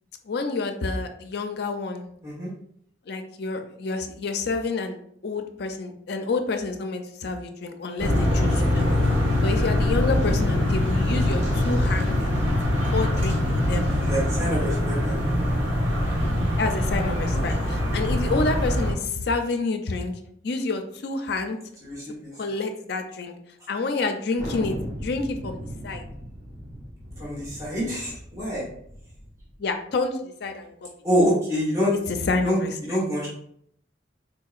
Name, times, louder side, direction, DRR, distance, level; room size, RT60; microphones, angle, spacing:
voice 1, 0.3-2.1 3.1-5.0 5.2-8.9 9.4-12.2 12.9-13.9 16.6-20.1 20.4-21.6 22.4-23.3 23.7-26.0 29.6-30.7 32.1-33.0, left 3 dB, 60° left, 6 dB, 0.4 m, -28 dB
sound 1, 8.0-18.9, left 1 dB, 80° right, 1.4 m, -23 dB
voice 2, 13.9-15.3 17.3-17.7 21.8-22.3 27.2-28.6 31.0-31.9 32.4-33.3, equal, 20° right, -7 dB, 1.2 m, -26 dB
Thunder, 24.4-29.5, equal, 40° right, 0.8 m, -38 dB
4.0 x 2.8 x 2.4 m, 0.68 s
head